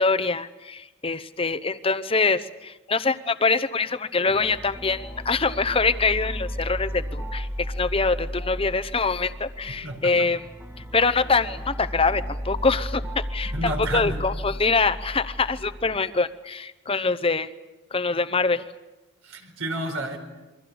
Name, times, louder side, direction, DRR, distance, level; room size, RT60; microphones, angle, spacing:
voice 1, 0.0-10.4 10.9-17.5 17.9-18.6, left 4 dB, 25° left, 13 dB, 0.8 m, -24 dB
sound 1, 4.3-16.0, equal, 10° right, 1.5 m, -34 dB
voice 2, 9.8-10.3 13.4-14.2 19.2-20.2, right 1 dB, 75° right, 5 dB, 4.5 m, -30 dB
28.0 x 24.0 x 7.0 m, 1.1 s
head